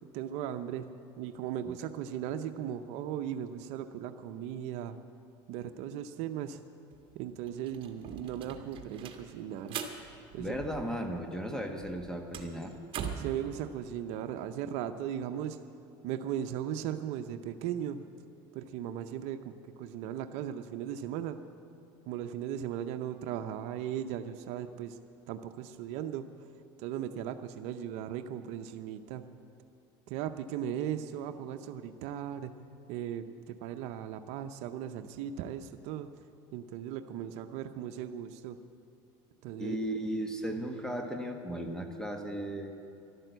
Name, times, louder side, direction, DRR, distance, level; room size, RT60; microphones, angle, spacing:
voice 1, 0.1-0.9 1.2-5.0 5.5-6.6 7.1-9.8 10.3-10.6 13.2-15.6 16.0-18.0 18.5-21.4 22.1-25.0 25.3-26.2 26.8-29.2 30.1-32.5 32.9-36.1 36.5-38.6 39.4-39.8, right 10 dB, 70° right, 9 dB, 0.7 m, -37 dB
sound 1, 6.9-7.0 7.3-11.2 11.5-13.4, right 7 dB, 50° right, 1.5 m, -42 dB
voice 2, 10.4-12.7 39.6-42.7, equal, 5° left, 5 dB, 1.3 m, -36 dB
12.0 x 12.0 x 8.0 m, 2.7 s
supercardioid pair, 110°, 12 cm